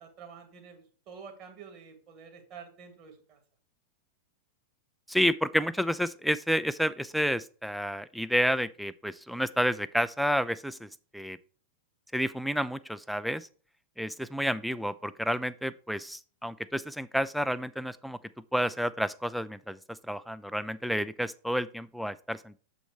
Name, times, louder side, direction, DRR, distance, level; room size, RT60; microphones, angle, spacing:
voice 1, 0.0-3.4, right 6 dB, 35° right, 4 dB, 1.7 m, -49 dB
voice 2, 5.1-11.4 12.1-13.5 14.0-18.2 18.5-19.8 20.1-22.6, equal, ahead, 14 dB, 0.3 m, -30 dB
7.1 x 4.1 x 4.5 m, 0.41 s
figure-of-eight pair, 90°, 0 cm